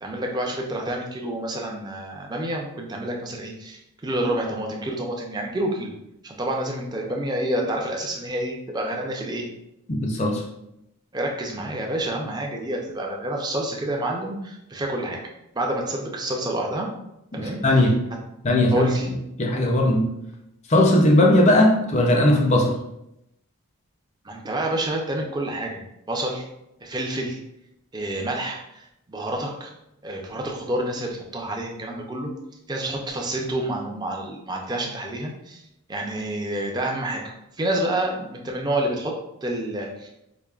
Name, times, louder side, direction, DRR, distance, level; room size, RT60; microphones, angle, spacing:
voice 1, 0.0-5.9 6.2-9.5 11.1-15.2 15.5-16.9 17.3-17.6 18.7-19.1 24.2-25.8 26.1-26.4 26.8-27.4 27.9-28.8 29.1-29.7 30.0-32.3 32.7-35.6 35.9-39.1 39.4-40.1, right 1 dB, 20° right, 0 dB, 0.5 m, -28 dB
voice 2, 10.0-10.4 17.3-18.0 18.4-20.1 20.7-22.7, left 1 dB, 30° left, 1 dB, 0.5 m, -18 dB
5.0 x 2.6 x 2.4 m, 0.84 s
head